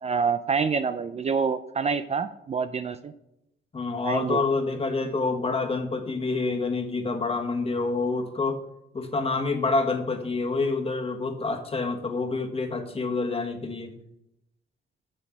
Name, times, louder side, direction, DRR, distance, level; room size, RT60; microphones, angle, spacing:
voice 1, 0.0-3.1 4.0-4.4, right 5 dB, 35° right, 11 dB, 0.5 m, -27 dB
voice 2, 3.7-8.6 8.9-13.9, left 3 dB, 30° left, 4 dB, 1.5 m, -27 dB
7.7 x 6.8 x 6.0 m, 0.84 s
cardioid pair, 90°, 20 cm